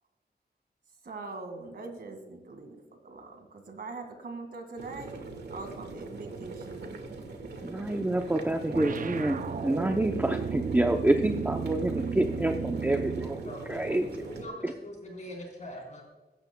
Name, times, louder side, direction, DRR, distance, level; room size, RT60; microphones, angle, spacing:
voice 1, 1.0-5.2 5.5-7.0, right 3 dB, 70° right, 5 dB, 2.0 m, -42 dB
sound 1, 4.8-14.4, right 3 dB, 90° right, 1.6 m, -42 dB
voice 2, 7.6-13.4 13.7-14.2 14.6-14.7, right 1 dB, 10° right, 4 dB, 0.6 m, -28 dB
sound 2, 8.7-13.5, right 6 dB, 55° right, 0.5 m, -34 dB
voice 3, 13.4-13.9 14.2-16.1, left 1 dB, 45° left, 0 dB, 4.1 m, -42 dB
16.5 x 12.5 x 2.2 m, 1.2 s
wide cardioid pair, 130°, 17 cm